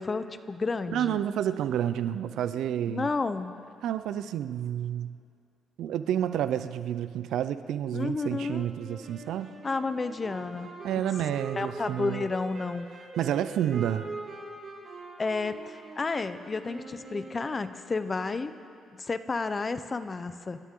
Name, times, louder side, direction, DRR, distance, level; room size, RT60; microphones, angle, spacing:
voice 1, 0.0-1.2 2.9-3.5 7.9-8.7 9.6-10.7 11.6-12.9 15.2-18.5 19.0-20.6, left 4 dB, 30° left, 12 dB, 0.8 m, -31 dB
voice 2, 0.9-3.1 3.8-5.2 5.8-9.5 10.8-12.2 13.2-14.1, right 10 dB, 80° right, 12 dB, 0.6 m, -29 dB
Wind instrument woodwind instrument, 8.4-17.9, right 3 dB, 50° right, 4.0 m, -43 dB
29.0 x 13.0 x 3.8 m, 2.4 s
cardioid pair, 90°, 0 cm